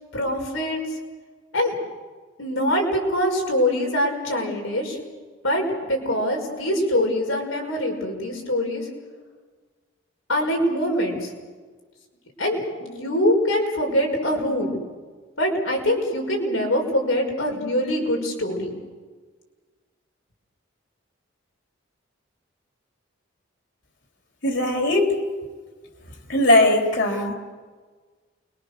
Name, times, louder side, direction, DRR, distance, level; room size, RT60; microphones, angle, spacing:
voice 1, 0.1-0.8 1.5-1.8 2.4-5.0 5.4-5.6 5.9-8.9 10.3-11.3 12.4-14.8 15.4-18.7, equal, 85° left, 1 dB, 5.7 m, -23 dB
voice 2, 24.4-25.2 26.3-27.3, left 1 dB, 60° left, 2 dB, 3.6 m, -19 dB
29.0 x 22.5 x 6.7 m, 1.4 s
head